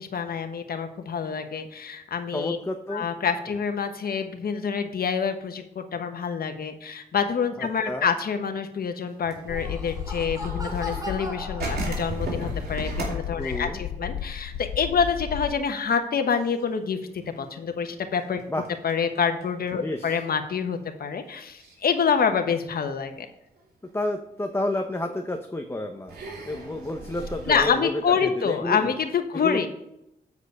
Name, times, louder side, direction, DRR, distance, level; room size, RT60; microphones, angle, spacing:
voice 1, 0.0-2.6 2.9-17.0 17.4-18.4 18.8-23.3 27.5-29.7, left 6 dB, 65° left, 7 dB, 1.2 m, -27 dB
voice 2, 2.3-3.1 7.6-8.1 13.4-13.8 18.5-18.6 19.8-20.2 23.9-26.1 26.4-28.9 29.4-29.7, left 1 dB, 15° left, 4 dB, 0.9 m, -30 dB
sound 1, 9.1-11.3 11.6-14.8 15.1-15.2 15.6-16.0 16.3-19.7 20.4-20.5 21.6-21.8 22.4-23.0 23.6-23.7 25.0-25.1 26.1-27.7, right 3 dB, 75° right, 2.7 m, -36 dB
Laughter, 9.3-12.5, left 1 dB, 20° right, 2.1 m, -38 dB
sound 2, 9.5-15.5, left 9 dB, 90° left, 0.4 m, -34 dB
8.3 x 4.9 x 6.5 m, 0.81 s
cardioid pair, 65°, 17 cm